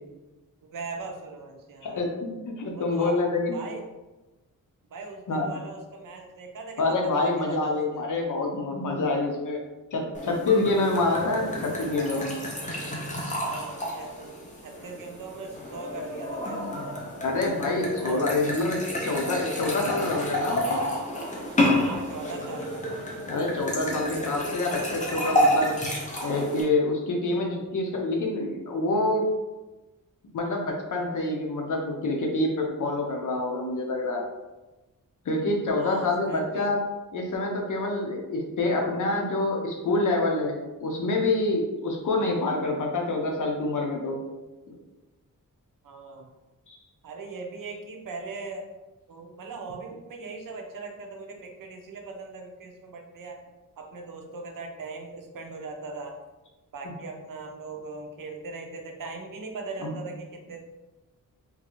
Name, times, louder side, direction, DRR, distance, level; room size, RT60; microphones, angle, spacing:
voice 1, 0.6-2.0 2.7-3.2 3.5-3.9 4.9-8.0 13.4-16.9 18.0-18.4 21.8-23.0 35.7-36.7 45.8-46.3 47.0-48.7 49.1-53.4 53.8-56.2 56.7-60.6, right 3 dB, 70° right, 2 dB, 0.6 m, -39 dB
voice 2, 1.8-3.6 5.3-5.5 6.8-9.6 9.9-12.4 17.2-20.8 23.3-25.8 26.2-29.2 30.3-34.2 35.2-36.8 37.1-40.6 40.8-44.2 44.7-44.8 46.7-46.8 59.8-59.9, left 2 dB, 65° left, 0 dB, 0.7 m, -27 dB
sound 1, 10.1-26.6, left 1 dB, 20° left, 0.6 m, -30 dB
3.7 x 2.6 x 3.0 m, 1.1 s
wide cardioid pair, 155°, 34 cm